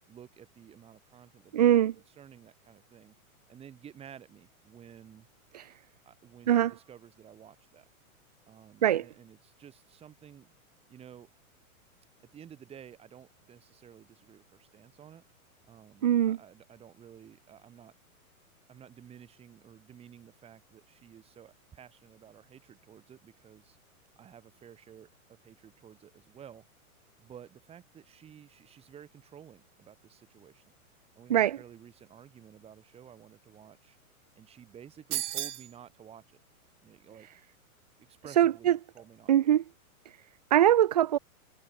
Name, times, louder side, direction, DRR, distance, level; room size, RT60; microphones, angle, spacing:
voice 1, 0.1-3.2 3.5-5.3 6.1-7.9 8.5-10.5 10.9-11.3 12.2-15.2 15.7-17.9 18.7-23.8 24.2-26.6 27.2-30.6 31.1-34.0 34.4-36.4 36.8-37.3 38.1-39.5, right 9 dB, 15° right, 4.1 m, -53 dB
voice 2, 1.5-1.9 5.5-5.7 6.5-6.7 8.8-9.0 16.0-16.4 31.3-31.6 38.4-38.7 39.3-39.6 40.5-41.2, right 11 dB, 30° right, 0.4 m, -22 dB
sound 1, 35.1-35.7, right 12 dB, 85° right, 1.1 m, -33 dB
hypercardioid pair, 165°, 43 cm